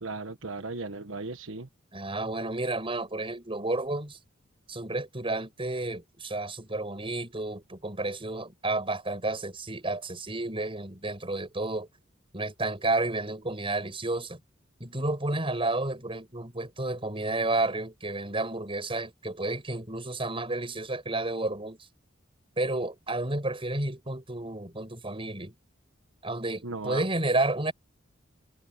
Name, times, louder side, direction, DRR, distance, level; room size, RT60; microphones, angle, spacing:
voice 1, 0.0-1.7 26.6-27.0, right 3 dB, 90° right, 1.3 m, -36 dB
voice 2, 1.9-4.2 4.7-11.9 12.3-14.4 14.8-21.8 22.6-25.5 26.2-27.7, right 2 dB, 30° right, 6.7 m, -31 dB
head